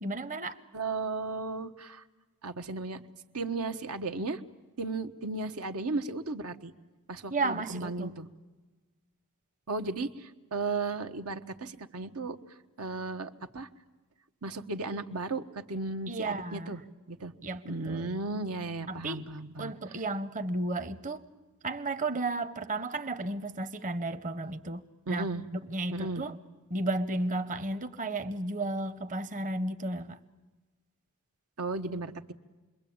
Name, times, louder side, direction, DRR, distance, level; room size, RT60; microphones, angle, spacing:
voice 1, 0.0-0.6 7.3-8.2 16.1-16.8 17.4-18.1 18.9-19.2 19.6-21.2 21.6-25.3 25.5-26.4 26.7-30.2, right 2 dB, 35° right, 0.9 m, -33 dB
voice 2, 0.7-2.0 2.4-3.0 3.3-4.4 4.8-6.7 7.1-8.3 9.7-13.7 14.4-16.8 17.1-17.3 17.6-19.7 25.1-25.4 25.9-26.2 31.6-32.3, right 3 dB, 90° right, 1.2 m, -35 dB
27.5 x 22.0 x 8.7 m
head